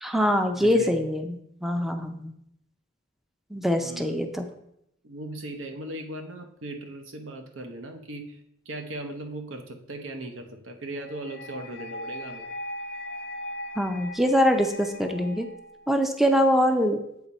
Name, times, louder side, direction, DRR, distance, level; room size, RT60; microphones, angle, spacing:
voice 1, 0.0-2.3 3.5-4.5 13.8-15.5 15.9-17.0, equal, ahead, 5 dB, 0.4 m, -23 dB
voice 2, 0.6-1.0 3.8-4.2 5.0-8.4 8.7-12.5, right 1 dB, 85° right, 5 dB, 0.8 m, -38 dB
sound 1, 11.0-16.0, left 1 dB, 65° left, 0.5 m, -39 dB
8.0 x 3.5 x 4.1 m, 0.77 s
head